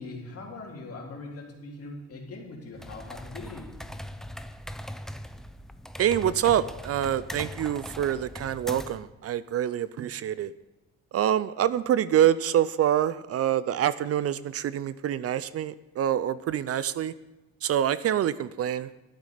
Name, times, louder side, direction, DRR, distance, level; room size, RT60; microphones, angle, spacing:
voice 1, 0.0-3.8, left 3 dB, 50° left, 0 dB, 2.7 m, -41 dB
sound 1, 2.7-9.1, equal, ahead, 0.5 m, -40 dB
voice 2, 6.0-10.5 11.1-17.1 17.6-19.0, right 10 dB, 50° right, 17 dB, 0.4 m, -26 dB
11.5 x 8.4 x 5.0 m, 1.1 s
cardioid pair, 90°, 30 cm